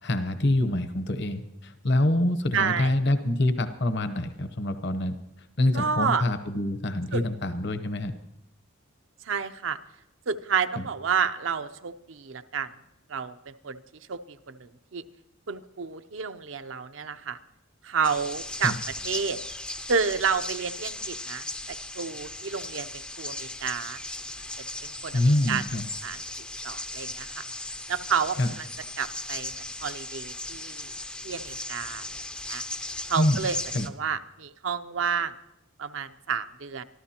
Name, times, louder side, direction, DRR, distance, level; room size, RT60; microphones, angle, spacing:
voice 1, 0.0-5.2 5.6-8.1 10.8-10.9 18.6-18.8 25.1-25.8 28.4-28.5 33.2-33.4 33.7-33.9, left 1 dB, 55° left, 10 dB, 0.9 m, -25 dB
voice 2, 2.5-2.9 5.7-6.2 7.1-7.2 9.2-9.8 10.3-12.7 13.1-13.8 14.1-15.0 15.5-17.4 17.8-18.7 19.0-19.4 19.9-24.0 24.8-25.6 26.0-27.4 27.9-28.7 29.0-29.5 29.8-30.9 31.2-32.0 32.5-32.6 33.1-33.6 33.9-35.3 35.8-36.8, right 6 dB, 65° right, 10 dB, 0.6 m, -30 dB
sound 1, 18.0-33.9, left 2 dB, 5° left, 0.4 m, -37 dB
24.0 x 14.0 x 2.9 m, 0.87 s
head